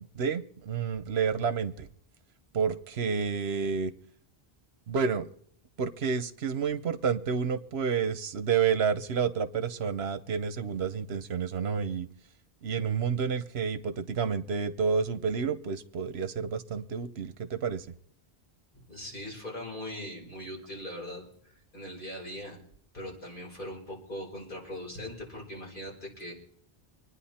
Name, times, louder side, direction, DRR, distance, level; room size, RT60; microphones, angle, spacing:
voice 1, 0.1-1.9 2.5-3.9 4.9-5.3 5.8-12.1 12.6-17.9, right 6 dB, 75° right, 12 dB, 1.1 m, -29 dB
voice 2, 18.7-22.6 22.9-26.3, left 1 dB, 55° left, -3 dB, 5.3 m, -40 dB
25.5 x 9.9 x 4.3 m, 0.64 s
omnidirectional pair, 1.1 m